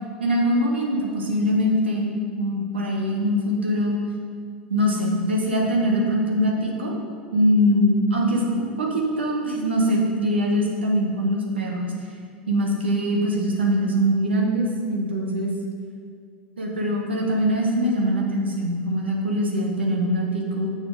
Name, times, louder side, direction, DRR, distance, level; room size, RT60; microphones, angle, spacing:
voice 1, 0.2-4.0 4.7-6.9 7.3-11.9 12.5-15.5 16.6-20.8, equal, 80° right, -1 dB, 1.2 m, -22 dB
6.6 x 5.7 x 5.5 m, 2.1 s
figure-of-eight pair, 80°, 6 cm